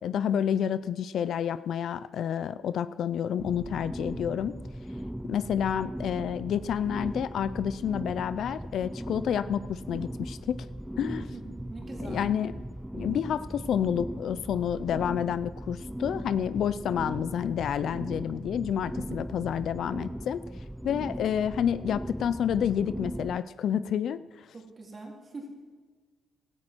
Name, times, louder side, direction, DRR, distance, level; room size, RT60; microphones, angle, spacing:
voice 1, 0.0-4.6 5.3-10.7 11.0-11.2 12.1-12.5 12.9-20.4 20.8-24.2, left 9 dB, 70° left, 14 dB, 0.4 m, -29 dB
sound 1, 3.4-23.4, equal, 5° right, 0.4 m, -38 dB
voice 2, 11.3-12.3 24.5-25.5, right 3 dB, 35° right, -1 dB, 3.4 m, -43 dB
16.5 x 13.5 x 4.5 m, 1.5 s
cardioid pair, 90°, 0 cm